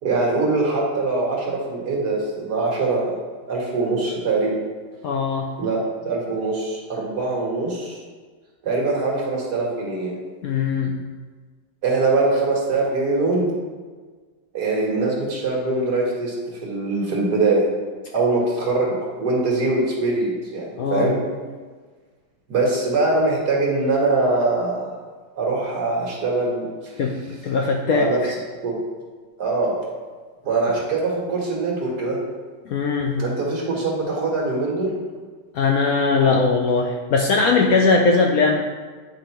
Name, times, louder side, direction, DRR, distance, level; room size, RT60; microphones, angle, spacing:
voice 1, 0.0-3.1 3.5-4.6 5.6-8.0 8.6-10.1 11.8-13.5 14.5-17.7 18.1-21.2 22.5-24.9 25.3-27.0 27.9-28.8 29.4-29.7 30.4-32.2 33.2-34.9, right 3 dB, 65° right, -3 dB, 1.9 m, -22 dB
voice 2, 5.0-5.5 10.4-11.0 20.8-21.1 27.0-28.3 32.7-33.3 35.5-38.6, left 4 dB, 70° left, 1 dB, 0.8 m, -20 dB
8.8 x 4.9 x 2.9 m, 1.5 s
omnidirectional pair, 1.9 m